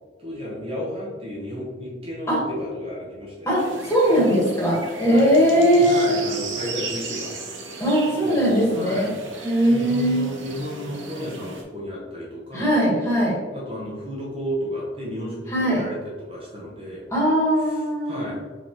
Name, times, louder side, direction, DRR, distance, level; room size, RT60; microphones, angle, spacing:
voice 1, 0.2-3.5 5.0-7.3 7.6-7.9 8.2-9.3 9.7-12.7 13.5-17.0 17.7-18.4, equal, 30° right, -5 dB, 0.9 m, -33 dB
voice 2, 3.5-6.1 7.8-9.1 9.4-10.3 12.5-13.4 15.5-15.8 17.1-18.3, equal, 15° left, -6 dB, 1.4 m, -20 dB
sound 1, 3.6-11.6, right 3 dB, 80° right, 0.7 m, -36 dB
4.9 x 3.4 x 3.0 m, 1.4 s
head